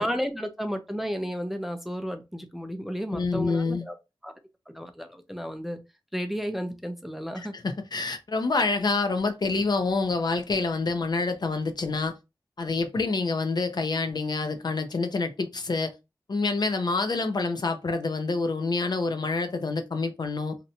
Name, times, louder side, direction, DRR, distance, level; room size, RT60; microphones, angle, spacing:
voice 1, 0.0-3.9 4.2-4.3 4.7-5.8 6.1-7.5, equal, ahead, 0.4 m, -32 dB
voice 2, 3.1-3.9 7.4-12.1 12.6-15.9 16.3-20.6, left 3 dB, 55° left, 0.4 m, -27 dB
2.7 x 2.1 x 2.6 m
wide cardioid pair, 85°, 9 cm